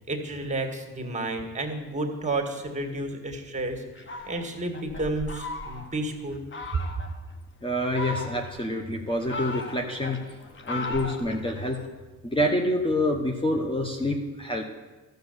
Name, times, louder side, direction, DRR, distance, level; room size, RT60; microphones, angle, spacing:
voice 1, 0.1-3.8 4.2-6.4, right 2 dB, 25° right, 4 dB, 2.0 m, -31 dB
Fowl, 4.0-6.0 6.5-7.1 7.7-8.6 9.1-11.9, left 2 dB, 40° left, 1.4 m, -37 dB
voice 2, 7.6-10.2 10.6-11.8 12.2-14.6, left 1 dB, 15° left, 2 dB, 1.2 m, -27 dB
12.5 x 6.7 x 8.1 m, 1.3 s
cardioid pair, 90°, 30 cm